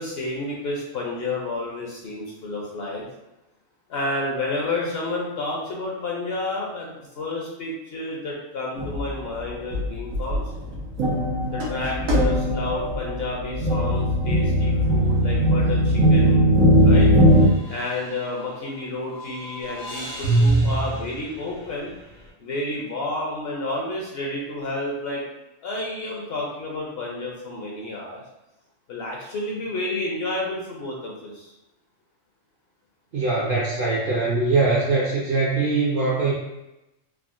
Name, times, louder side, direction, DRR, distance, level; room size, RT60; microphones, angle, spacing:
voice 1, 0.0-3.1 3.9-10.5 11.5-16.4 16.8-17.1 17.7-21.9 22.4-25.2 25.6-28.2 28.9-31.5, left 2 dB, 60° left, -3 dB, 0.7 m, -30 dB
sound 1, 8.8-9.1 9.7-9.9 10.1-17.5, equal, 90° right, 1.2 m, -19 dB
sound 2, 14.7-15.0 15.4-15.5 17.3-18.8 19.1-22.1, right 2 dB, 80° left, 1.1 m, -26 dB
voice 2, 33.1-36.3, right 3 dB, 60° right, -6 dB, 0.6 m, -22 dB
3.5 x 2.1 x 2.4 m, 0.94 s
omnidirectional pair, 1.4 m